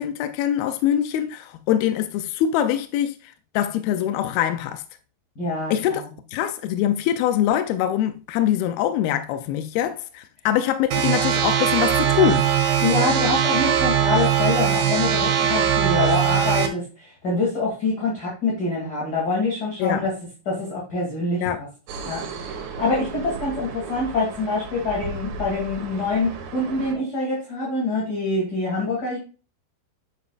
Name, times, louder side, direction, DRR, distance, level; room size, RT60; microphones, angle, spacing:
voice 1, 0.0-4.8 5.7-6.0 6.3-12.5 19.8-20.1 21.4-21.6, left 11 dB, 80° left, 2.3 m, -23 dB
voice 2, 5.4-6.1 12.8-20.1 20.5-21.7 22.0-29.2, left 3 dB, 30° left, 2.4 m, -25 dB
sound 1, 10.9-16.7, right 9 dB, 65° right, 2.7 m, -20 dB
sound 2, 21.9-27.0, right 4 dB, 90° right, 3.6 m, -35 dB
9.8 x 7.1 x 2.4 m
omnidirectional pair, 4.8 m